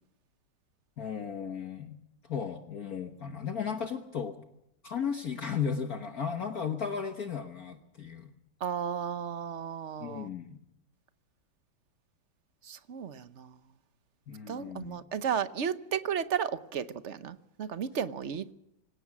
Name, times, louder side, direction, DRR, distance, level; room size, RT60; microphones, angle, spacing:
voice 1, 1.0-2.0 2.2-4.4 4.8-8.3 10.0-10.6 14.3-15.0, left 6 dB, 50° left, 6 dB, 1.6 m, -35 dB
voice 2, 8.6-10.3 12.6-13.6 14.5-18.5, right 8 dB, 50° right, 13 dB, 0.9 m, -34 dB
26.0 x 17.0 x 6.1 m, 0.83 s
omnidirectional pair, 2.2 m